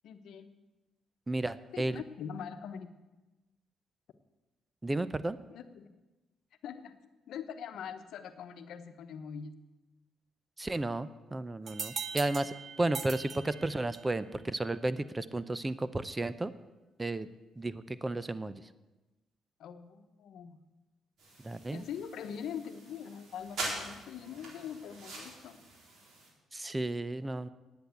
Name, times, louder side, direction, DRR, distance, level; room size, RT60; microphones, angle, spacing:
voice 1, 0.0-0.5 1.7-2.9 5.5-5.9 6.6-6.9 7.3-9.5 19.6-20.6 21.7-25.6, left 7 dB, 75° left, 9 dB, 1.0 m, -43 dB
voice 2, 1.3-2.0 4.8-5.4 10.6-16.5 17.0-17.3 17.6-18.6 21.4-21.8 26.5-27.5, right 2 dB, 20° right, 15 dB, 0.6 m, -33 dB
sound 1, 11.7-14.2, right 6 dB, 45° right, 0.8 m, -41 dB
sound 2, 21.2-26.3, right 2 dB, 65° right, 4.1 m, -43 dB
10.5 x 8.6 x 8.2 m, 1.1 s
cardioid pair, 90°, 0 cm